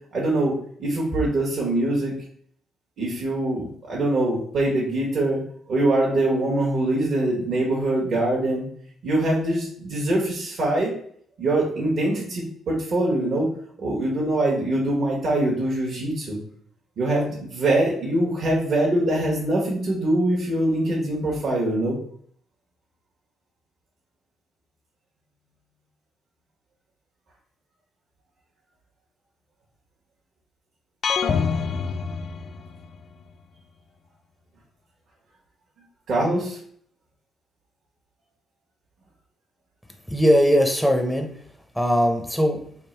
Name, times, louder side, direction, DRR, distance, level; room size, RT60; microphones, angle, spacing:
voice 1, 0.1-2.1 3.0-5.4 5.7-8.7 9.0-10.9 11.4-13.5 13.8-16.4 17.0-22.0 36.1-36.6, right 1 dB, 55° right, -4 dB, 1.1 m, -23 dB
sound 1, 31.0-33.0, left 6 dB, 50° left, 0.4 m, -26 dB
voice 2, 40.1-41.3 41.7-42.6, equal, ahead, 3 dB, 0.6 m, -20 dB
3.6 x 2.4 x 4.3 m, 0.63 s
cardioid pair, 90°, 0 cm